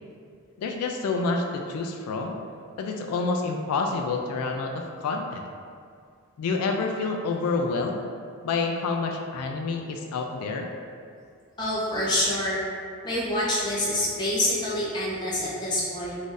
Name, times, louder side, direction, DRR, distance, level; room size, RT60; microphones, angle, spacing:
voice 1, 0.6-2.4 2.8-5.5 6.4-8.0 8.4-10.7, left 3 dB, 85° left, 2 dB, 0.3 m, -28 dB
voice 2, 11.6-12.6 13.0-16.2, left 1 dB, 20° left, -7 dB, 0.6 m, -26 dB
2.5 x 2.5 x 3.8 m, 2.3 s
head